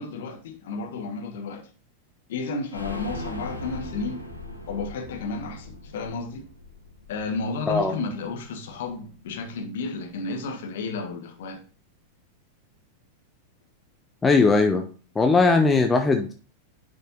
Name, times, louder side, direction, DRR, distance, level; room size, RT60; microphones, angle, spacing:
voice 1, 0.0-1.7 2.3-4.2 4.7-6.5 7.1-11.6, left 4 dB, 55° left, 1.4 m, -32 dB
sound 1, 2.7-8.3 8.7-8.8 9.1-9.2, left 1 dB, 90° right, 1.3 m, -39 dB
voice 2, 14.2-14.9 15.2-16.3, left 3 dB, 15° left, 0.7 m, -19 dB
10.0 x 5.3 x 2.9 m
figure-of-eight pair, 90°, 0 cm